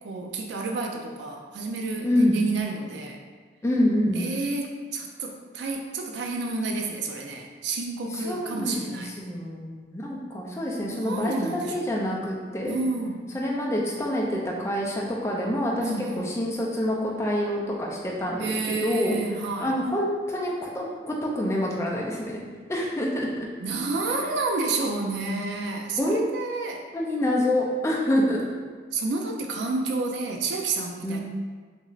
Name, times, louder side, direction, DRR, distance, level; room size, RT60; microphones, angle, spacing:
voice 1, 0.0-3.2 4.2-9.1 10.9-11.8 12.7-13.2 15.8-16.4 18.4-19.7 23.6-26.8 28.9-31.2, right 3 dB, 80° right, 2 dB, 0.4 m, -30 dB
voice 2, 2.0-2.4 3.6-4.2 8.2-12.7 13.3-19.1 19.6-22.4 22.7-23.5 26.0-26.2 26.9-28.6 31.0-31.2, left 1 dB, 15° left, -3 dB, 0.3 m, -26 dB
2.5 x 2.4 x 3.0 m, 1.5 s
head